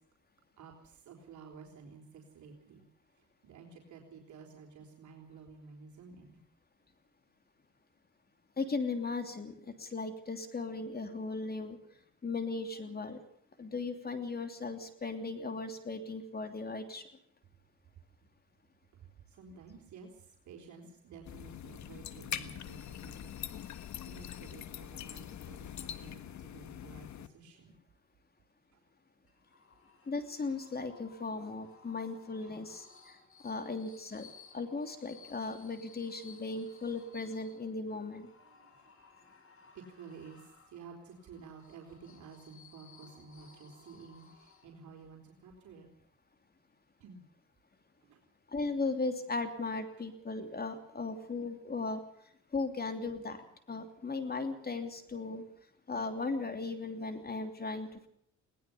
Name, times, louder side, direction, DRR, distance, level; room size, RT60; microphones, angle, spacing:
voice 1, 0.6-2.8 3.2-6.4 19.3-27.8 28.7-28.8 32.4-32.6 38.4-39.2 39.7-45.9 47.0-47.2 48.0-48.2 50.1-50.2, right 5 dB, 70° right, 0 dB, 4.1 m, -52 dB
voice 2, 8.6-11.8 12.2-13.2 13.6-17.0 30.1-32.8 33.4-38.3 48.5-52.0 52.5-53.4 53.7-55.4 55.9-58.1, left 3 dB, 30° left, 7 dB, 3.0 m, -37 dB
sound 1, 21.3-27.3, left 10 dB, 70° left, 1.5 m, -43 dB
sound 2, 29.3-45.0, left 5 dB, 45° left, 5.5 m, -59 dB
20.5 x 18.5 x 7.0 m, 0.65 s
cardioid pair, 90°, 30 cm